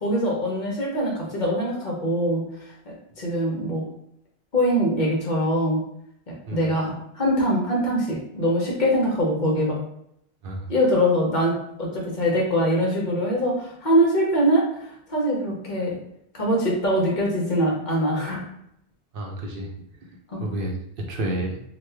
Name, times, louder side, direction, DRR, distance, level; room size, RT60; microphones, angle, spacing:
voice 1, 0.0-2.4 2.9-3.8 4.5-5.8 6.3-9.8 10.7-16.0 16.3-18.5 20.3-20.4, equal, 50° left, -3 dB, 0.9 m, -23 dB
voice 2, 19.1-19.7 20.4-21.6, right 1 dB, 65° right, 1 dB, 0.7 m, -30 dB
2.9 x 2.2 x 3.3 m, 0.74 s
omnidirectional pair, 1.1 m